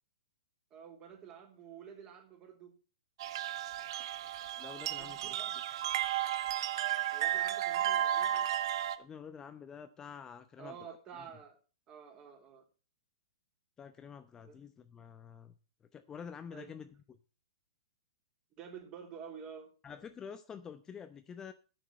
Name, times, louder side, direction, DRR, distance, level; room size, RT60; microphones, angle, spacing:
voice 1, 0.7-2.7 5.0-5.6 7.1-8.5 10.6-11.6 11.9-12.6 14.4-14.6 16.5-16.8 18.6-19.7, right 7 dB, 30° right, 3 dB, 3.5 m, -50 dB
sound 1, 3.2-9.0, right 11 dB, 55° right, 1.0 m, -33 dB
voice 2, 4.6-5.4 9.0-10.8 13.8-15.5 15.9-16.9 19.8-21.5, left 7 dB, 20° left, 9 dB, 0.8 m, -48 dB
10.0 x 6.6 x 7.3 m, 0.36 s
hypercardioid pair, 120°, 3 cm